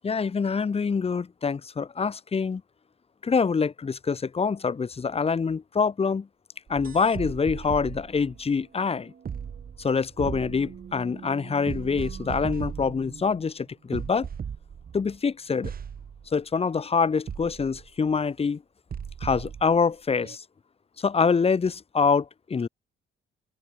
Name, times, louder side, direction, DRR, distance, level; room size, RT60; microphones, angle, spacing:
voice 1, 0.0-2.6 3.2-6.3 6.7-9.1 9.8-14.3 14.9-15.7 16.3-18.6 19.2-20.4 21.0-22.7, left 5 dB, 30° left, 1.1 m, -25 dB
sound 1, 6.7-13.5 13.9-15.2 15.6-16.3 17.3-18.1 18.9-19.8 20.2-20.4, right 7 dB, 45° right, 2.5 m, -37 dB
cardioid pair, 90°, 20 cm